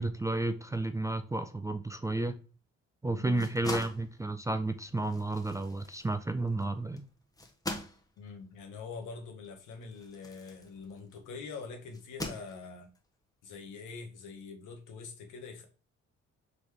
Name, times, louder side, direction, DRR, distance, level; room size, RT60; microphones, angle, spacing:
voice 1, 0.0-2.4 3.0-7.1, right 2 dB, 10° right, 0.3 m, -32 dB
voice 2, 3.1-3.5 8.2-12.9 13.4-15.7, left 4 dB, 85° left, 1.1 m, -44 dB
sound 1, 3.2-11.3 11.9-13.0, left 1 dB, 10° left, 0.9 m, -43 dB
3.9 x 3.1 x 3.3 m
cardioid pair, 90°, 30 cm